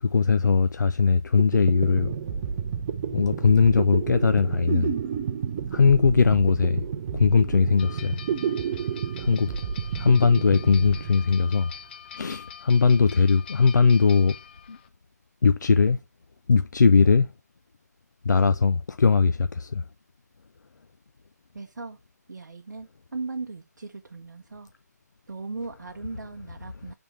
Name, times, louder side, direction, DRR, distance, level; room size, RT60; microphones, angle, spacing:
voice 1, 0.0-2.2 3.1-4.9 5.7-6.8 7.1-8.2 9.2-9.5 9.9-11.7 12.1-14.4 14.7-14.8 15.4-16.0 16.5-17.3 18.2-19.8, left 5 dB, 85° left, 0.4 m, -20 dB
sound 1, 1.1-1.2 1.4-11.8, right 7 dB, 30° right, 0.6 m, -30 dB
sound 2, 7.8-14.9, left 8 dB, 35° left, 0.7 m, -45 dB
voice 2, 21.5-22.0 22.3-24.7 25.3-26.9, right 3 dB, 80° right, 0.7 m, -38 dB
5.5 x 3.5 x 5.7 m
figure-of-eight pair, 150°, 10 cm